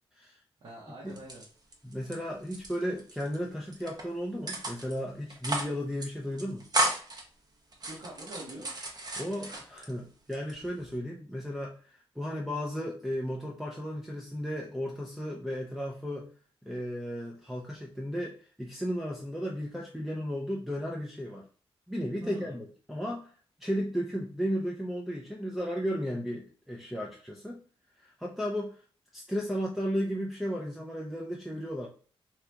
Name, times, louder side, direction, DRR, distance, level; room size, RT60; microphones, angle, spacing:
voice 1, 0.6-1.4 7.9-8.7 22.2-22.6, right 1 dB, 65° right, -6 dB, 1.1 m, -44 dB
sound 1, 1.1-2.1 2.4-3.4 3.7-4.0 4.5-5.0 5.3-5.7 6.0-6.1 6.4-7.2 7.7-9.9 10.3-10.9, right 1 dB, 40° right, 0.7 m, -33 dB
voice 2, 1.8-6.7 9.1-16.3 16.6-21.4 21.9-23.3 23.6-27.6 28.0-28.8 29.1-31.9, equal, ahead, -3 dB, 0.5 m, -34 dB
2.9 x 2.4 x 3.3 m, 0.41 s
cardioid pair, 90°, 10 cm